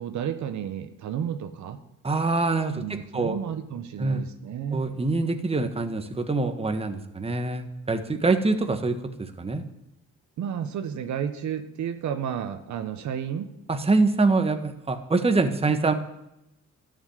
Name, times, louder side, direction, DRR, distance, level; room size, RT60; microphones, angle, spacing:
voice 1, 0.0-1.8 2.7-4.9 10.4-13.5, right 8 dB, 70° right, 8 dB, 1.2 m, -32 dB
voice 2, 2.0-3.4 4.0-4.2 4.7-9.6 13.7-15.9, right 3 dB, 20° right, 6 dB, 1.5 m, -25 dB
12.5 x 7.2 x 9.1 m, 0.86 s
cardioid pair, 90°, 30 cm